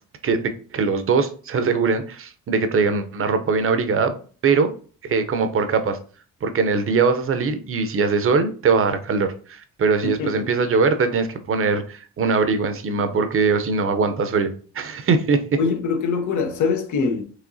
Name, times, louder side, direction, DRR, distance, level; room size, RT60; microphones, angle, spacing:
voice 1, 0.2-4.2 4.4-4.7 5.0-6.0 6.4-15.6, right 4 dB, 45° right, 0.6 m, -21 dB
voice 2, 10.0-10.5 15.6-17.2, left 5 dB, 75° left, 0.9 m, -23 dB
4.9 x 3.0 x 2.6 m
cardioid pair, 90°, 30 cm